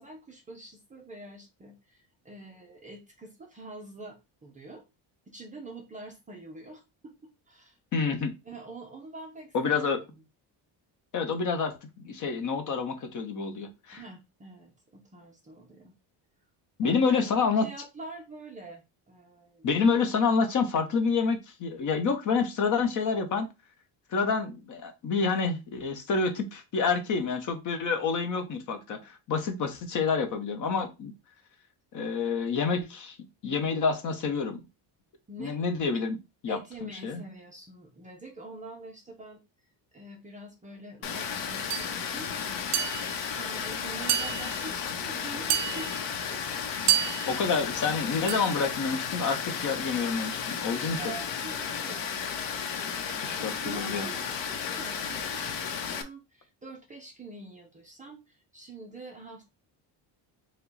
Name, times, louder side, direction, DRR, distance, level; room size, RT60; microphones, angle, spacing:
voice 1, 0.0-4.8 5.3-7.8 8.1-8.2 8.4-10.2 13.9-15.9 16.8-19.7 35.3-35.6 36.5-39.4 39.9-42.7 43.3-46.4 50.8-52.2 52.8-59.4, right 2 dB, 20° right, 0.5 m, -45 dB
voice 2, 7.9-8.3 9.5-10.0 11.1-11.8 12.0-14.0 16.8-17.7 19.6-23.5 24.1-31.1 31.9-33.1 33.4-34.6 35.4-36.2 36.4-37.2 47.3-51.0 53.2-54.1, left 5 dB, 40° left, 0.8 m, -28 dB
Water, 41.0-56.0, left 7 dB, 85° left, 0.9 m, -33 dB
sound 1, 41.7-41.9 42.7-43.3 44.1-44.7 45.5-46.1 46.9-47.5 48.3-48.6, right 12 dB, 65° right, 0.7 m, -29 dB
4.7 x 2.2 x 3.9 m
cardioid pair, 175°, 45 cm